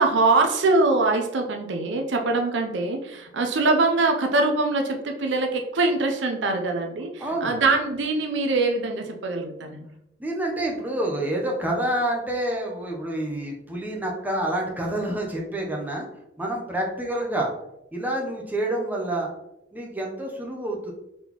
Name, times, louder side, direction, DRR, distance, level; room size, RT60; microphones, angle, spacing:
voice 1, 0.0-9.9, right 3 dB, 80° right, 3 dB, 0.6 m, -23 dB
voice 2, 7.2-7.6 10.2-16.0 16.4-17.5 17.9-19.3 19.7-20.9, right 1 dB, 10° right, -1 dB, 0.7 m, -28 dB
3.9 x 3.7 x 3.0 m, 0.85 s
head